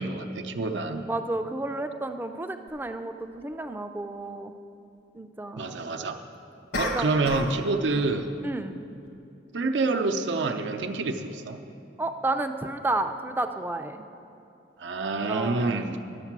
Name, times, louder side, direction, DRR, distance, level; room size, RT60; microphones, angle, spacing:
voice 1, 0.0-1.1 5.6-6.2 6.8-8.3 9.5-11.6 14.8-16.0, right 3 dB, 90° right, 5 dB, 0.6 m, -27 dB
voice 2, 1.1-4.5 5.1-5.7 6.9-7.1 8.4-8.9 12.0-14.0 15.3-15.8, right 2 dB, 10° right, 8 dB, 0.3 m, -31 dB
sound 1, 2.7-2.8 6.7-7.6 7.9-8.2, left 1 dB, 75° left, 1.3 m, -31 dB
11.0 x 7.3 x 6.0 m, 2.7 s
head